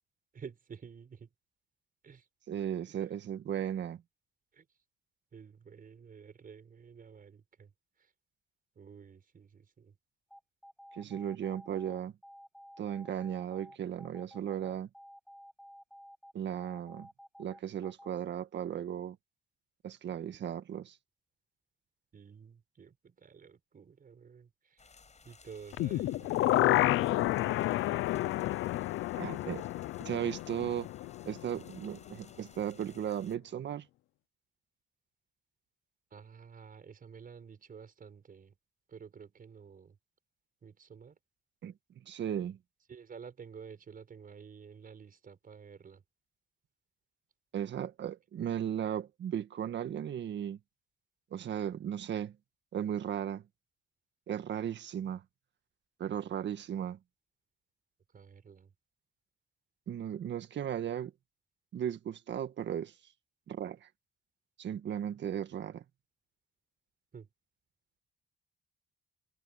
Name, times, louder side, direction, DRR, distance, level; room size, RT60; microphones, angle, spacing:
voice 1, 0.3-1.3 2.0-2.3 4.5-4.7 5.3-7.7 8.0-8.1 8.8-9.9 22.1-24.8 25.2-27.8 36.1-38.5 38.9-40.0 40.6-41.2 42.9-46.0 58.1-58.7 67.1-67.3, right 6 dB, 45° right, 5.8 m, -51 dB
voice 2, 2.5-4.0 10.9-12.1 12.8-14.9 16.3-17.1 17.4-19.2 19.8-21.0 29.2-29.6 30.0-30.9 31.2-33.9 41.6-41.7 42.0-42.6 47.5-50.6 51.3-52.3 52.7-53.4 54.3-55.2 56.0-57.0 59.9-61.1 61.7-62.9 63.5-63.9 64.6-65.8, right 9 dB, 65° right, 1.8 m, -36 dB
sound 1, 10.3-18.1, equal, ahead, 5.2 m, -53 dB
sound 2, 24.8-33.4, left 5 dB, 35° left, 7.4 m, -59 dB
sound 3, 25.7-31.8 32.1-32.2, left 16 dB, 90° left, 0.6 m, -30 dB
cardioid pair, 90°, 20 cm